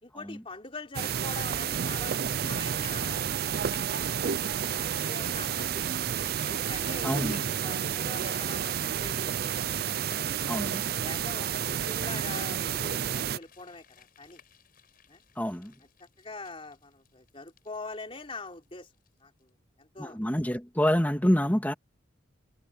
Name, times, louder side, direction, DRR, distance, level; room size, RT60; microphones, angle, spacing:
voice 1, 0.0-3.3 3.9-5.9 6.5-9.7 11.0-14.4 15.1-15.2 16.0-18.9 19.2-19.5 19.8-20.2, left 3 dB, 30° left, 3.9 m, -44 dB
sound 1, 0.9-13.4, right 8 dB, 50° right, 0.4 m, -30 dB
sound 2, 2.8-3.0 3.3-4.1 4.5-4.6 5.0-5.1 5.9-19.5 19.8-19.9, left 6 dB, 50° left, 7.7 m, -55 dB
voice 2, 7.0-7.4 10.5-10.8 15.4-15.8 20.0-21.7, equal, 10° left, 2.2 m, -27 dB
head